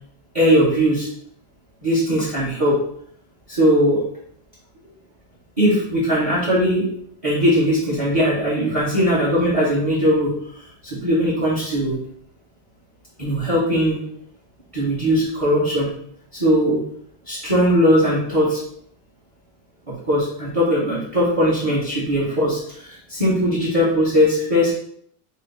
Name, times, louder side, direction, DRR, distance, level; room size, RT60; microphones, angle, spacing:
voice 1, 0.3-1.1 1.8-2.8 3.5-4.0 5.6-6.9 7.2-12.0 13.2-14.0 14.7-15.9 16.3-16.8 17.3-18.6 20.1-24.7, equal, 25° right, -7 dB, 1.0 m, -19 dB
4.1 x 2.2 x 4.0 m, 0.66 s
omnidirectional pair, 1.7 m